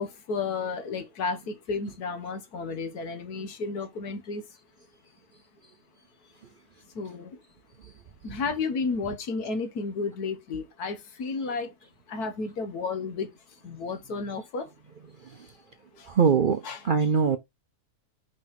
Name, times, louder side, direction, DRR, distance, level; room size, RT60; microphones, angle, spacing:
voice 1, 0.0-4.4 7.0-7.3 8.2-11.7 12.1-13.3 13.6-14.7 16.6-16.8, left 4 dB, 90° left, 1.7 m, -32 dB
voice 2, 16.1-17.4, right 6 dB, 60° right, 0.5 m, -23 dB
5.2 x 3.5 x 5.6 m
omnidirectional pair, 1.6 m